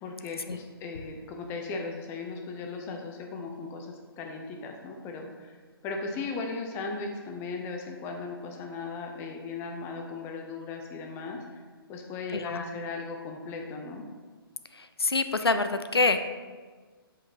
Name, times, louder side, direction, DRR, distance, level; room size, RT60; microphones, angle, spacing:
voice 1, 0.0-5.6 5.8-11.6 11.9-14.1, left 4 dB, 20° left, 2 dB, 0.6 m, -37 dB
voice 2, 12.3-12.6 15.0-16.2, left 3 dB, 90° left, 9 dB, 0.4 m, -25 dB
7.4 x 5.0 x 2.8 m, 1.4 s
figure-of-eight pair, 130°, 13 cm